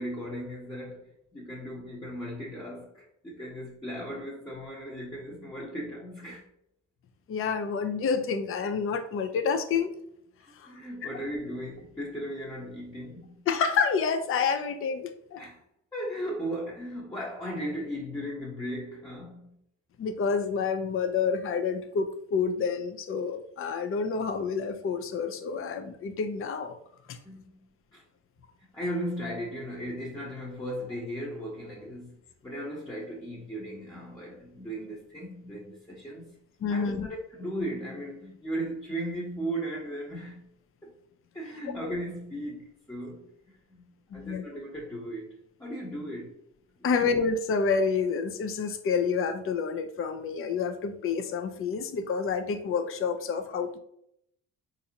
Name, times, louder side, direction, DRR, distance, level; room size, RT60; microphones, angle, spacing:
voice 1, 0.0-6.5 10.6-13.5 15.4-15.6 15.9-19.6 27.2-27.5 27.9-28.0 28.7-36.4 36.7-40.5 40.8-40.9 41.3-43.3 43.7-46.4 46.8-47.0, equal, 10° left, 0.9 m, -37 dB
voice 2, 7.3-9.9 10.6-10.7 13.5-15.4 20.0-26.8 27.1-27.2 36.6-37.1 44.1-44.4 46.8-53.8, left 5 dB, 45° left, 0.5 m, -28 dB
4.0 x 2.6 x 2.8 m
cardioid pair, 90°, 30 cm